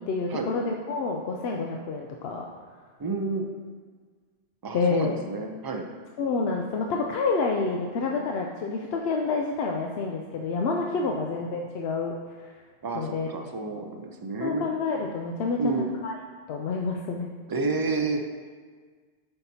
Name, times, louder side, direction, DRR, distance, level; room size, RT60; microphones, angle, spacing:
voice 1, 0.0-2.5 4.7-5.2 6.2-12.5 12.9-13.3 14.4-15.6 16.0-16.2 16.5-17.3, left 4 dB, 65° left, 1 dB, 0.8 m, -28 dB
voice 2, 3.0-3.4 4.6-5.9 12.8-14.7 15.6-15.9 17.5-18.3, right 3 dB, 35° right, 4 dB, 0.3 m, -30 dB
9.0 x 5.9 x 2.8 m, 1.5 s
omnidirectional pair, 1.2 m